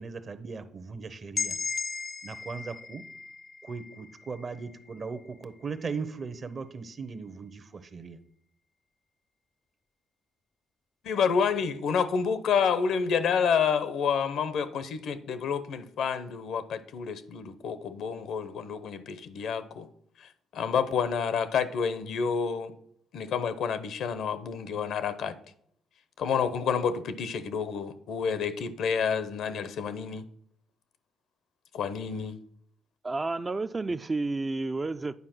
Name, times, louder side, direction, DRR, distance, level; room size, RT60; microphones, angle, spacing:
voice 1, 0.0-1.6 2.2-3.1 3.6-8.2, right 5 dB, 45° right, 11 dB, 0.8 m, -38 dB
sound 1, 1.4-5.2, left 5 dB, 40° left, 0.5 m, -36 dB
voice 2, 11.0-19.9 20.2-22.7 23.1-25.4 26.2-30.2 31.7-32.4, left 6 dB, 75° left, 13 dB, 0.8 m, -29 dB
voice 3, 33.0-35.1, right 3 dB, 25° right, 10 dB, 0.4 m, -30 dB
9.5 x 4.7 x 6.0 m, 0.66 s
cardioid pair, 90°, 0 cm